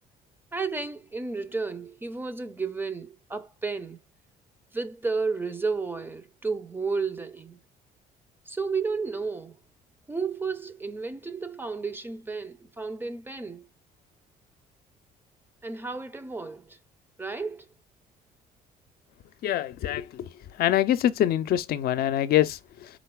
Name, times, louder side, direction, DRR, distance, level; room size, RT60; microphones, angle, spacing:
voice 1, 0.5-4.0 4.7-7.6 8.5-9.6 10.1-13.7 15.6-16.8 17.2-17.6, right 4 dB, 10° right, 0.6 m, -32 dB
voice 2, 19.4-20.3 20.6-22.9, left 12 dB, 65° left, 0.5 m, -25 dB
5.1 x 3.9 x 2.2 m
cardioid pair, 110°, 17 cm